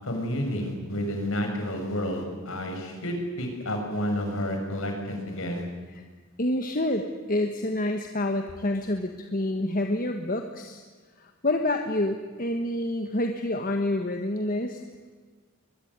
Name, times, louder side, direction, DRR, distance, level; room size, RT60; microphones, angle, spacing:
voice 1, 0.0-5.6, equal, 65° left, 3 dB, 6.3 m, -30 dB
voice 2, 6.4-10.8 11.2-14.8, left 1 dB, 40° left, 5 dB, 1.5 m, -28 dB
22.5 x 21.5 x 9.6 m, 1.4 s
head